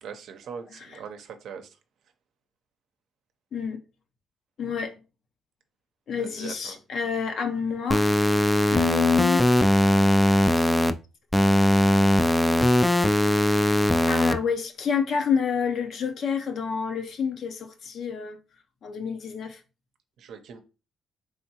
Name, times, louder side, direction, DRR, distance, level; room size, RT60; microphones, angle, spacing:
voice 1, 0.0-1.7 6.2-6.8 20.2-20.6, right 6 dB, 75° right, 0.6 m, -41 dB
voice 2, 4.6-4.9 6.1-8.1 8.7-9.4 14.1-18.4 18.8-19.6, left 7 dB, 60° left, 0.7 m, -28 dB
sound 1, 7.9-10.9 11.3-14.3, left 1 dB, 10° left, 0.3 m, -20 dB
3.5 x 3.5 x 2.8 m
cardioid pair, 90°, 0 cm